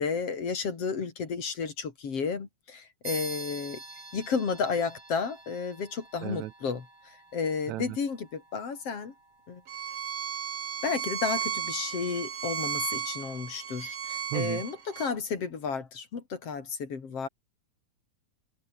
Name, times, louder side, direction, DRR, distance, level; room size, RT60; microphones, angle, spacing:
voice 1, 0.0-3.8 4.1-9.1 9.5-9.6 10.8-17.3, left 5 dB, 50° left, 3.9 m, -32 dB
sound 1, 3.0-13.0, right 2 dB, 40° right, 9.0 m, -47 dB
Bowed string instrument, 9.7-15.1, right 8 dB, 55° right, 3.1 m, -34 dB
voice 2, 14.3-14.6, right 16 dB, 75° right, 1.9 m, -33 dB
omnidirectional pair, 3.5 m